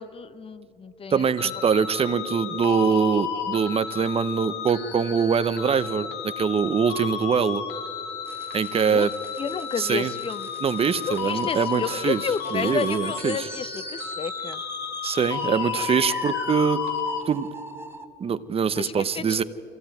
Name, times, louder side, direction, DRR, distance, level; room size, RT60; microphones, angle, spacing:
voice 1, 0.0-1.5 8.9-9.1 9.4-10.5 11.1-14.6 18.8-19.4, left 6 dB, 35° left, 16 dB, 0.8 m, -31 dB
voice 2, 1.1-7.6 8.5-9.1 9.8-10.1 10.6-12.2 12.5-13.5 15.0-16.8 17.3-17.5 18.2-19.4, right 6 dB, 35° right, 13 dB, 0.8 m, -23 dB
sound 1, 1.4-17.2, left 8 dB, 85° left, 1.9 m, -32 dB
sound 2, 8.3-18.0, right 3 dB, 15° right, 1.2 m, -41 dB
23.5 x 16.5 x 9.1 m, 2.7 s
cardioid pair, 110°, 17 cm